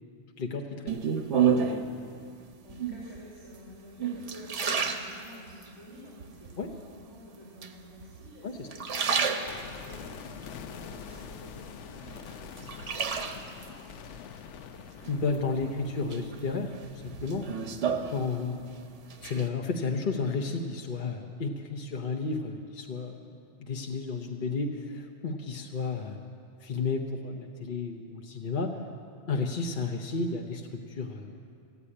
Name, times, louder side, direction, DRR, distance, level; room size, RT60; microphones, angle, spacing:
voice 1, 0.4-1.0 6.6-6.7 8.4-8.7 15.1-17.5 18.1-18.6 19.2-23.2 23.6-26.2 26.6-28.8 29.3-30.6 30.9-31.4, left 4 dB, 50° left, 2 dB, 1.0 m, -32 dB
sound 1, 0.9-1.9 2.7-3.2 3.7-5.7 6.2-6.8 7.6-8.3 8.6-9.9 10.4-11.6 12.0-13.7 15.0-15.7 16.1-18.7 19.0-19.5, right 6 dB, 80° right, 1.2 m, -30 dB
voice 2, 1.8-13.9 17.7-17.9, left 1 dB, 15° left, -9 dB, 3.6 m, -51 dB
sound 2, 9.5-19.5 19.8-19.9, left 7 dB, 80° left, 0.9 m, -46 dB
15.5 x 8.3 x 9.9 m, 2.4 s
omnidirectional pair, 1.2 m